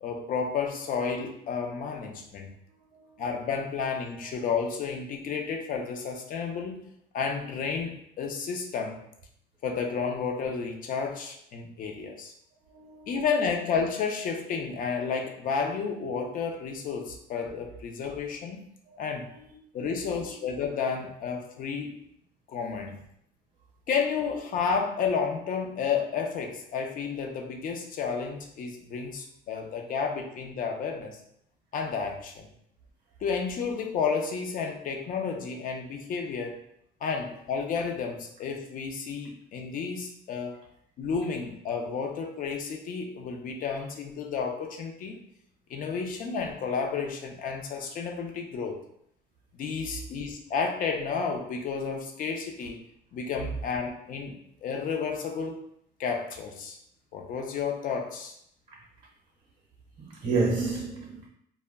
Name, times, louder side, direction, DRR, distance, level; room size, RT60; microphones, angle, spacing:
voice 1, 0.0-2.5 3.2-6.8 7.1-9.0 9.6-12.3 13.1-18.6 19.0-19.3 19.7-22.0 22.5-23.0 23.9-31.2 31.7-32.5 33.2-36.6 37.0-40.6 41.0-45.2 45.7-48.8 49.6-52.8 53.1-55.6 56.0-56.8 57.1-58.3, left 5 dB, 55° left, 3 dB, 0.5 m, -31 dB
voice 2, 12.7-13.2 18.9-19.0 19.3-19.4 19.8-20.3 58.7-58.8 60.0-61.3, right 3 dB, 45° right, -1 dB, 0.6 m, -31 dB
2.1 x 2.1 x 3.4 m, 0.72 s
cardioid pair, 110°, 17 cm